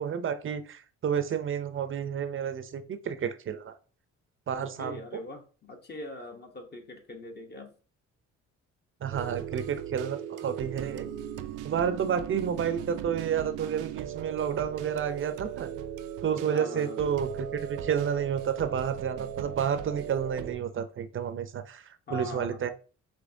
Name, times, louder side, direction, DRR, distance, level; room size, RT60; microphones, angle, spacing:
voice 1, 0.0-3.7 4.5-5.0 9.0-11.1 11.6-15.7 16.2-21.8 22.1-22.7, right 8 dB, 45° right, 11 dB, 0.5 m, -30 dB
voice 2, 4.5-7.7 16.5-17.0 22.1-22.6, left 2 dB, 35° left, 3 dB, 1.0 m, -42 dB
sound 1, 9.1-20.5, right 9 dB, 90° right, 0.5 m, -38 dB
5.1 x 3.2 x 2.6 m, 0.37 s
cardioid pair, 90°, 30 cm